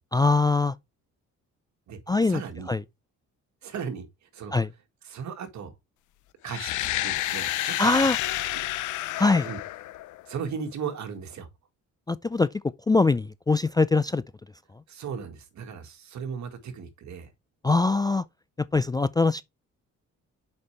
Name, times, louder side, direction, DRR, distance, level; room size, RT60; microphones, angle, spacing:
voice 1, 0.1-0.7 2.1-2.4 2.7-2.8 4.5-4.7 7.8-8.2 9.2-9.5 12.1-12.5 12.9-14.2 17.6-18.2 18.7-19.4, left 3 dB, 15° left, 0.3 m, -22 dB
voice 2, 2.2-2.7 3.6-4.5 5.0-5.7 6.4-8.1 8.5-8.6 9.5-9.6 10.3-11.5 14.9-17.3, right 6 dB, 65° right, 1.8 m, -36 dB
sound 1, 6.4-10.4, left 15 dB, 80° left, 0.6 m, -30 dB
6.7 x 5.4 x 3.2 m
cardioid pair, 90°, 30 cm